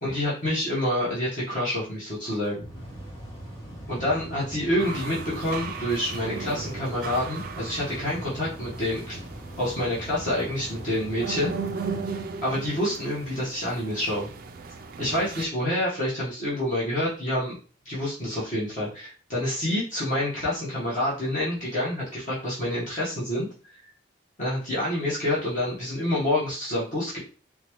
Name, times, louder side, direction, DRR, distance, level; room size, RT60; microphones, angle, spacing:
voice 1, 0.0-2.7 3.9-9.2 9.6-11.5 12.4-14.3 15.0-17.6 17.8-23.7 24.4-27.2, left 1 dB, 40° left, -8 dB, 1.1 m, -27 dB
Mechanical fan, 2.3-12.7, equal, 20° left, 1.3 m, -41 dB
sound 1, 4.8-15.5, right 5 dB, 50° right, 0.3 m, -37 dB
3.9 x 2.2 x 3.0 m, 0.37 s
head